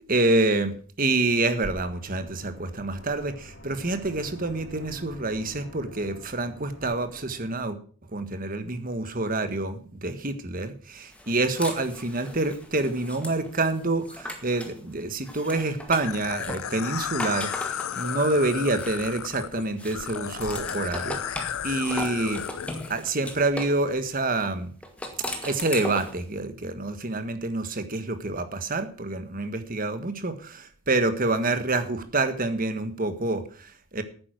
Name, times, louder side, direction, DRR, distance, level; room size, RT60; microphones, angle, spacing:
voice 1, 0.0-7.8 8.1-22.4 22.9-24.7 25.4-34.0, right 2 dB, 40° right, 9 dB, 1.5 m, -27 dB
sound 1, 1.2-7.7, left 1 dB, 60° left, 3.9 m, -47 dB
sound 2, 11.1-14.8 15.2-19.4 19.8-23.8 24.8-26.2, left 1 dB, 5° left, 1.9 m, -38 dB
sound 3, 16.0-22.9, left 9 dB, 75° left, 0.5 m, -33 dB
11.5 x 9.7 x 6.2 m, 0.43 s
head